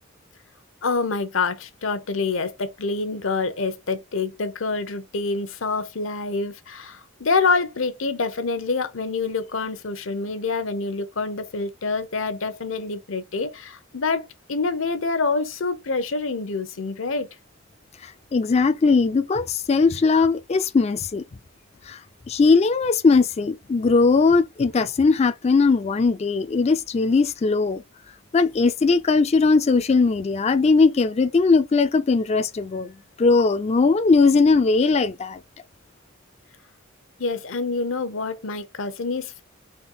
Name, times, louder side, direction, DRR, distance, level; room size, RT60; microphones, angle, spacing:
voice 1, 0.8-17.3 37.2-39.4, left 4 dB, 70° left, 0.8 m, -26 dB
voice 2, 18.0-21.2 21.9-22.0 22.3-27.8 28.3-32.9 33.2-35.4, left 4 dB, 30° left, 0.4 m, -19 dB
4.3 x 3.2 x 3.8 m
head